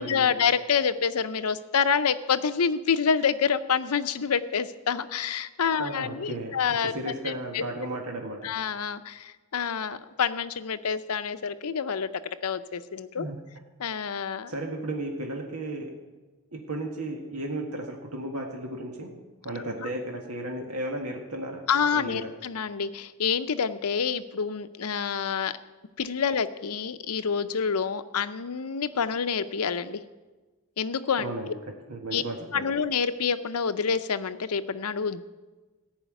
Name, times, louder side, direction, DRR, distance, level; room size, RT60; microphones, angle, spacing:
voice 1, 0.0-7.7 8.4-12.1 12.4-13.3 13.8-14.5 21.7-25.5 26.0-30.0 30.8-31.3 32.1-32.2 32.5-35.2, left 6 dB, 90° left, 11 dB, 0.7 m, -27 dB
voice 2, 5.8-6.6 6.8-8.5 13.2-13.3 14.5-15.9 16.5-19.1 19.4-21.6 21.9-22.3 31.2-31.5 31.9-32.6, right 1 dB, 85° right, 1 dB, 1.6 m, -34 dB
14.5 x 5.7 x 9.1 m, 1.2 s
head